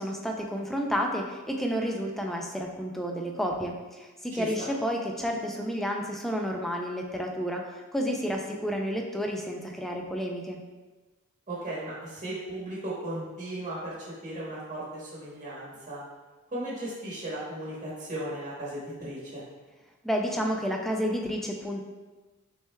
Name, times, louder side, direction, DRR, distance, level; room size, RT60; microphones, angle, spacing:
voice 1, 0.0-7.6 7.9-10.6 20.0-21.8, equal, ahead, 1 dB, 0.4 m, -30 dB
voice 2, 4.3-4.7 11.5-13.9 14.2-16.0 16.5-19.4, right 1 dB, 35° right, -8 dB, 1.1 m, -36 dB
6.0 x 3.4 x 2.2 m, 1.2 s
head